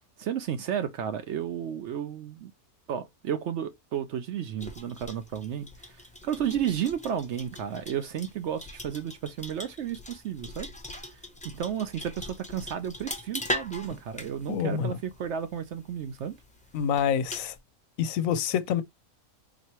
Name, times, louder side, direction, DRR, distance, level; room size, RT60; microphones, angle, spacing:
voice 1, 0.2-2.5 2.9-10.7 11.0-11.2 11.4-16.4, right 9 dB, 65° right, 0.7 m, -33 dB
sound 1, 4.6-17.6, left 1 dB, 10° left, 0.5 m, -41 dB
voice 2, 14.5-14.9 16.7-17.5 18.0-18.8, left 8 dB, 70° left, 0.9 m, -27 dB
4.2 x 3.0 x 2.9 m
omnidirectional pair, 1.5 m